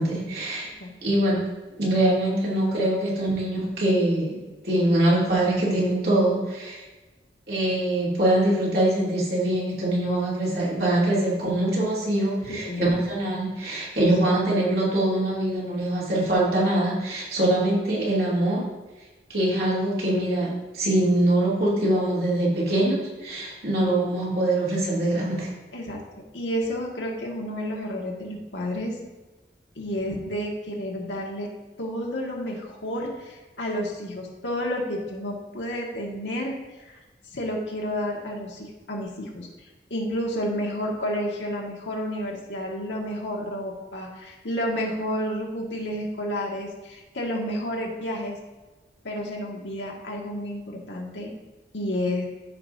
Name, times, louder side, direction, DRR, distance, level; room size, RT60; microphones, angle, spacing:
voice 1, 0.0-0.7 1.0-1.4 1.8-4.4 4.6-6.8 7.5-18.6 19.3-25.5, right 1 dB, 60° right, -7 dB, 2.8 m, -23 dB
voice 2, 12.5-12.9 25.7-26.0 26.3-29.0 29.8-31.5 31.8-36.5 36.9-37.0 37.3-39.5 39.9-48.4 49.0-51.3 51.7-52.3, equal, 90° left, -1 dB, 1.7 m, -30 dB
14.0 x 5.0 x 2.7 m, 1.2 s
head